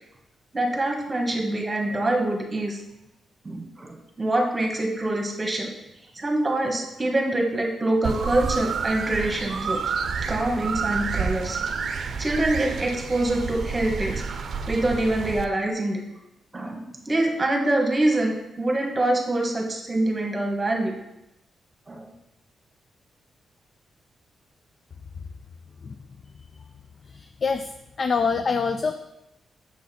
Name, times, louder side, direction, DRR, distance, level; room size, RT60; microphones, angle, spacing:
voice 1, 0.5-2.8 3.4-5.7 6.1-9.8 10.2-11.6 12.2-14.1 14.7-16.0 16.5-20.9 21.9-22.1, right 1 dB, 20° right, 2 dB, 1.4 m, -25 dB
sound 1, 8.0-15.4, right 5 dB, 55° right, 0.6 m, -29 dB
voice 2, 27.1-27.7 28.0-28.9, left 5 dB, 40° left, 7 dB, 0.4 m, -25 dB
7.4 x 6.6 x 4.3 m, 0.90 s
cardioid pair, 130°, 0 cm